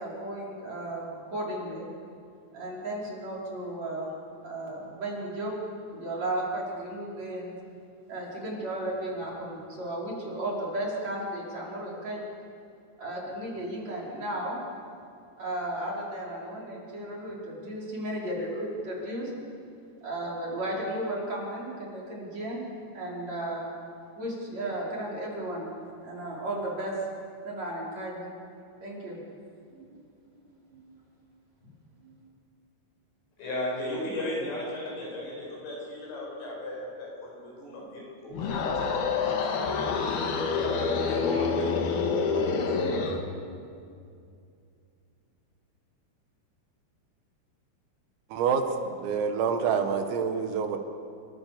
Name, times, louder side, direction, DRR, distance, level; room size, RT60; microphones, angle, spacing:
voice 1, 0.0-1.9 2.5-4.1 4.4-5.5 5.9-7.5 8.1-12.2 13.0-14.6 15.4-19.3 20.0-22.6 22.9-23.7 24.2-25.7 26.0-26.9 27.4-28.3 28.8-29.2 29.7-30.0 30.7-30.9 32.0-32.2, right 1 dB, 35° right, -4 dB, 6.1 m, -34 dB
voice 2, 33.4-41.7 42.2-43.3, left 1 dB, 75° left, -3 dB, 10.5 m, -36 dB
sound 1, 38.3-43.2, left 5 dB, 60° left, 3.3 m, -27 dB
voice 3, 48.3-50.8, right 6 dB, 90° right, 6 dB, 4.5 m, -27 dB
28.5 x 25.0 x 7.0 m, 2.4 s
omnidirectional pair, 5.9 m